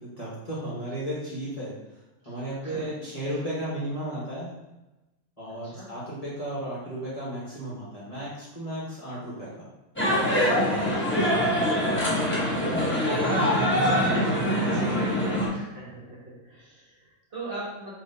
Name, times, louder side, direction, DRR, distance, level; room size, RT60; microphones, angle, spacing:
voice 1, 0.0-1.7 2.2-4.5 5.4-9.7 10.3-11.0 12.8-15.0, right 1 dB, 30° left, -8 dB, 1.2 m, -34 dB
voice 2, 2.6-3.0 5.6-5.9 12.5-13.0 15.5-18.0, right 2 dB, 45° right, -7 dB, 1.3 m, -41 dB
sound 1, 10.0-15.5, equal, 10° left, 0.8 m, -24 dB
5.3 x 2.7 x 2.7 m, 1.0 s
omnidirectional pair, 1.4 m